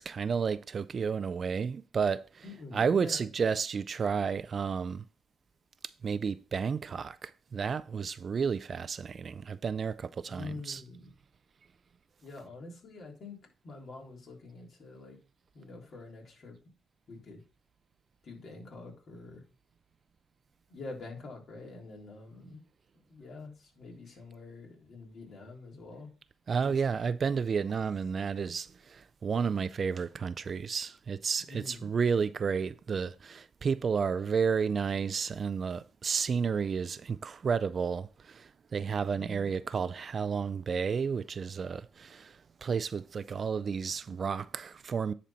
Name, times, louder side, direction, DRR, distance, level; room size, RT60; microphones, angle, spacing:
voice 1, 0.0-5.0 6.0-10.8 26.5-45.1, right 6 dB, 45° right, 0.4 m, -31 dB
voice 2, 2.4-3.3 10.3-11.1 12.2-13.4 13.6-15.2 15.5-16.5 17.1-17.4 18.2-19.4 20.7-22.6 23.1-26.1 26.6-26.8 31.4-32.0 39.1-39.5, left 2 dB, 55° left, 3.5 m, -46 dB
10.0 x 4.1 x 4.3 m
cardioid pair, 90°, 0 cm